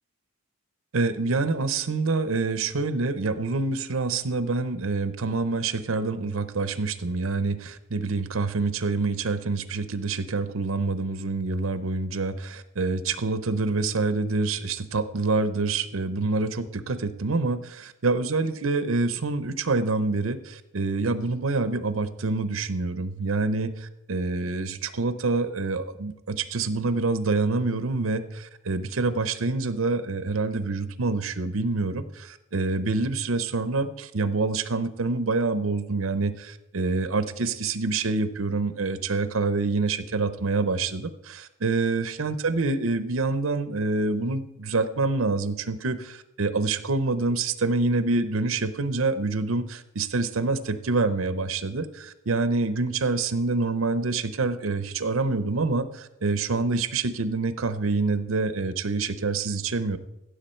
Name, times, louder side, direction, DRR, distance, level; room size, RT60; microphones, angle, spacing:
voice 1, 0.9-60.0, right 3 dB, 85° right, 12 dB, 0.8 m, -26 dB
15.5 x 7.0 x 4.4 m, 0.89 s
head